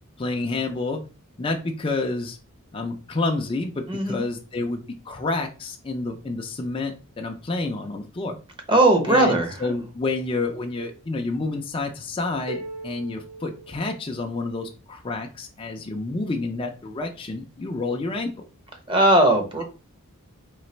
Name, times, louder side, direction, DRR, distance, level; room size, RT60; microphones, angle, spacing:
voice 1, 0.2-1.0 1.4-2.4 2.7-4.8 5.1-8.4 9.1-18.3, left 3 dB, 25° left, 2 dB, 0.4 m, -29 dB
voice 2, 3.9-4.2 8.7-9.6 18.9-19.6, right 1 dB, 20° right, 4 dB, 0.8 m, -18 dB
sound 1, 12.5-14.5, right 1 dB, 75° right, 1.7 m, -39 dB
3.9 x 3.3 x 3.2 m, 0.35 s
head